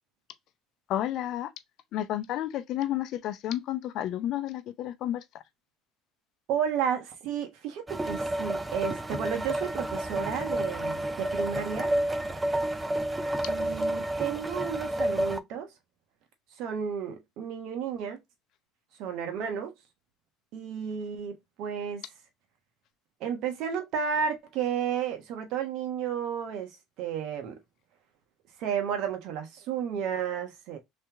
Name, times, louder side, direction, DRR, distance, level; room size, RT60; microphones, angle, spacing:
voice 1, 0.9-1.5 1.9-5.2, left 12 dB, 60° left, 0.6 m, -31 dB
voice 2, 6.5-11.9 13.5-15.7 16.6-18.2 19.0-19.7 20.5-22.0 23.2-27.6 28.6-30.8, right 7 dB, 65° right, 1.1 m, -32 dB
sound 1, 7.9-15.4, right 1 dB, 15° right, 0.5 m, -30 dB
3.3 x 2.9 x 3.4 m
supercardioid pair, 85°, 0 cm